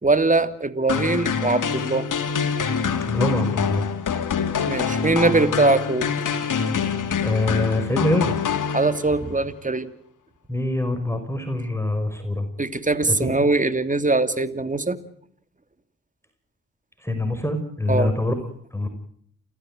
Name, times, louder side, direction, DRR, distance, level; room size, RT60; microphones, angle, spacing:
voice 1, 0.0-2.1 4.7-6.1 8.7-9.9 12.6-15.0 17.9-18.1, right 3 dB, 20° right, 11 dB, 2.8 m, -21 dB
sound 1, 0.9-9.3, left 6 dB, 60° left, 3.3 m, -25 dB
voice 2, 3.1-3.8 7.2-8.4 10.5-12.5 13.1-13.3 17.0-18.3 18.7-18.9, left 1 dB, 10° left, 7 dB, 5.7 m, -24 dB
29.0 x 15.5 x 9.1 m, 0.67 s
supercardioid pair, 50°, 35 cm